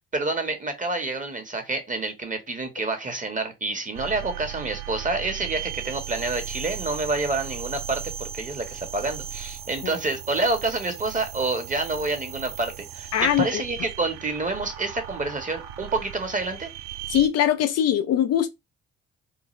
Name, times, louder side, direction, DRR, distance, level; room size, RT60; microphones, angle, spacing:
voice 1, 0.1-13.1 13.4-16.7, right 3 dB, 25° right, 1.2 m, -28 dB
sound 1, 3.9-17.3, right 10 dB, 70° right, 0.5 m, -37 dB
voice 2, 13.1-13.6 17.1-18.5, left 10 dB, 55° left, 0.5 m, -21 dB
3.8 x 2.2 x 3.2 m
hypercardioid pair, 45°, 31 cm